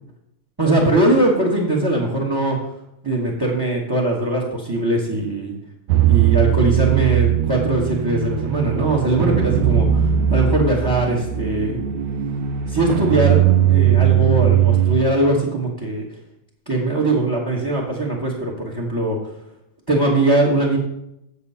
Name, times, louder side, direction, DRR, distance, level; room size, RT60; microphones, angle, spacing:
voice 1, 0.6-2.6 3.0-5.5 6.1-11.8 12.7-13.4 13.7-16.0 16.7-19.2 19.9-20.8, right 2 dB, 15° right, 0 dB, 1.0 m, -20 dB
sound 1, 5.9-15.0, right 10 dB, 75° right, 1.3 m, -19 dB
8.3 x 6.7 x 5.5 m, 0.84 s
omnidirectional pair, 2.1 m